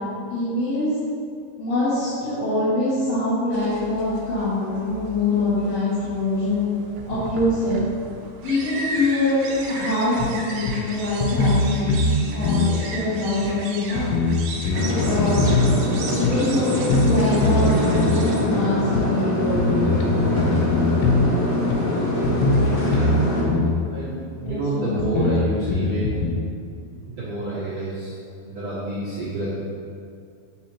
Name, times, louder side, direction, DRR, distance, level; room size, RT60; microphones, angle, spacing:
voice 1, 0.3-0.9 1.6-6.6 7.1-7.8 8.4-11.9 12.3-14.2 14.9-15.6 16.1-20.0 23.3-23.8 24.4-24.9, left 2 dB, 50° left, -13 dB, 2.1 m, -24 dB
sound 1, 3.5-18.4, right 2 dB, 80° right, 2.2 m, -36 dB
sound 2, 10.2-10.3 10.7-10.8 11.2-12.2 12.4-12.7 13.4-13.5 14.0-15.8 16.2-16.3 16.9-17.2 17.4-18.2 19.0-19.1 19.6-21.3 21.7-21.8 22.2-23.2 23.5-23.7 24.5-24.6 25.0-26.3, left 3 dB, 90° left, 3.1 m, -21 dB
sound 3, 14.7-23.4, left 1 dB, 70° left, 1.9 m, -24 dB
voice 2, 22.8-23.2 23.9-26.2 27.1-28.2 28.4-29.5, right 2 dB, 55° right, -14 dB, 1.9 m, -28 dB
7.3 x 6.4 x 2.9 m, 2.4 s
omnidirectional pair, 5.3 m